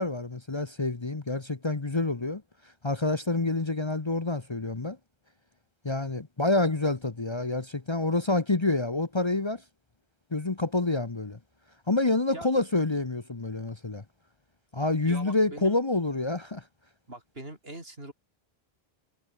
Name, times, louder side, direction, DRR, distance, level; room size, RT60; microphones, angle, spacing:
voice 1, 0.0-2.4 2.8-5.0 5.8-9.6 10.3-11.4 11.9-14.0 14.7-16.6, left 2 dB, 30° left, 1.0 m, -27 dB
voice 2, 12.3-12.6 15.0-15.8 17.1-18.1, right 1 dB, 70° right, 5.8 m, -42 dB
omnidirectional pair, 1.0 m